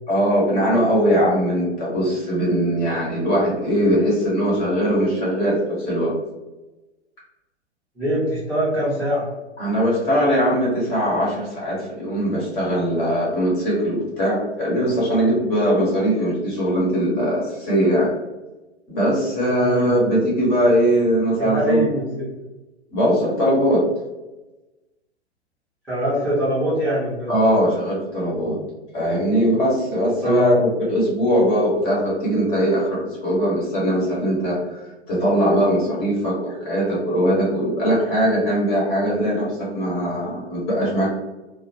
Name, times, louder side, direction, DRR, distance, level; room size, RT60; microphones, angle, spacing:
voice 1, 0.1-6.1 9.6-18.1 18.9-21.8 22.9-23.8 27.3-28.6 28.9-34.8 35.1-41.1, equal, 30° left, -6 dB, 1.1 m, -20 dB
voice 2, 8.0-9.3 19.6-19.9 21.4-22.2 25.9-27.3 30.2-30.6, equal, 5° right, -15 dB, 0.7 m, -23 dB
2.3 x 2.1 x 2.8 m, 1.1 s
figure-of-eight pair, 115°, 35 cm